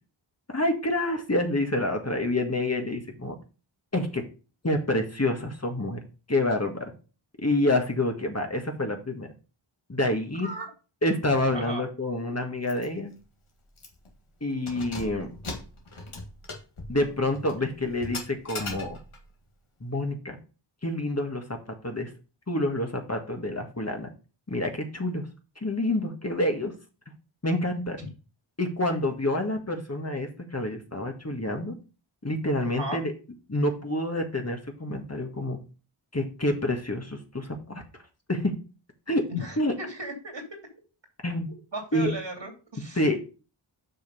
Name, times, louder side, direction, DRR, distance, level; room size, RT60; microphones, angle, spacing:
voice 1, 0.5-3.3 3.9-4.2 4.6-6.0 6.3-6.9 7.4-9.3 9.9-10.5 11.0-13.1 14.4-15.3 16.9-19.0 19.8-20.4 20.8-21.6 21.8-22.1 22.5-24.1 24.5-25.2 25.6-26.7 27.4-28.0 28.6-31.7 32.2-33.1 33.5-35.6 36.1-37.8 38.3-38.5 39.1-39.2 39.6-39.7 41.2-41.5 41.9-42.1 42.9-43.2, left 1 dB, 30° left, 3 dB, 1.6 m, -27 dB
Keys jangling, 12.7-12.9 13.2-13.3 13.8-14.1 14.5-19.3, left 2 dB, 80° left, 2.0 m, -39 dB
voice 2, 39.3-40.6 41.7-43.0, equal, 60° right, 3 dB, 2.7 m, -36 dB
6.6 x 5.2 x 5.3 m, 0.34 s
wide cardioid pair, 55°, 49 cm